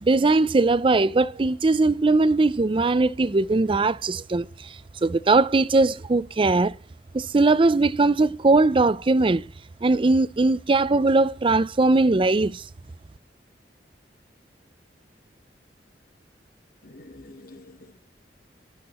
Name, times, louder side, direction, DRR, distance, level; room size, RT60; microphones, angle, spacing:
voice 1, 0.0-6.8 7.1-9.4 9.8-12.6, right 3 dB, 30° right, 0.4 m, -20 dB
voice 2, 16.8-18.0, left 2 dB, 55° left, 1.1 m, -46 dB
18.5 x 8.7 x 3.0 m
head